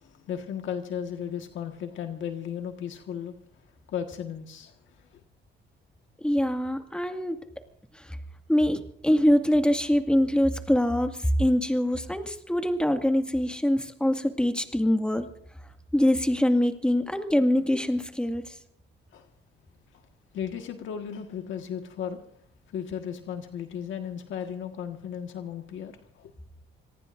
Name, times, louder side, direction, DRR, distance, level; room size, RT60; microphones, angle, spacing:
voice 1, 0.0-3.3 3.9-5.2 19.1-19.3 19.9-20.0 20.3-22.2 22.7-26.3, left 8 dB, 75° left, 5 dB, 1.7 m, -35 dB
voice 2, 6.2-7.4 7.9-8.2 8.5-15.3 15.9-18.6, equal, 5° left, 5 dB, 2.0 m, -24 dB
26.5 x 19.5 x 2.6 m, 0.66 s
cardioid pair, 90°, 20 cm